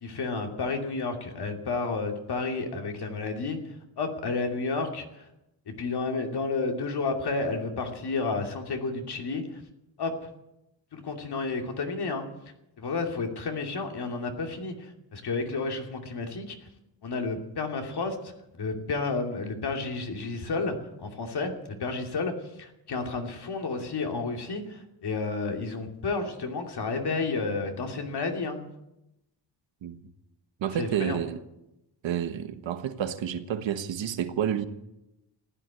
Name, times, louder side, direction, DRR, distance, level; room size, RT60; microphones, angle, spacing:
voice 1, 0.0-3.6 4.0-5.3 5.8-9.6 10.0-10.3 10.9-12.2 12.8-16.6 17.0-28.6 30.7-31.2, left 3 dB, 60° left, 2.7 m, -31 dB
voice 2, 30.6-31.4 32.0-34.6, right 9 dB, 80° right, 1.4 m, -30 dB
15.0 x 10.5 x 9.0 m
cardioid pair, 90°, 45 cm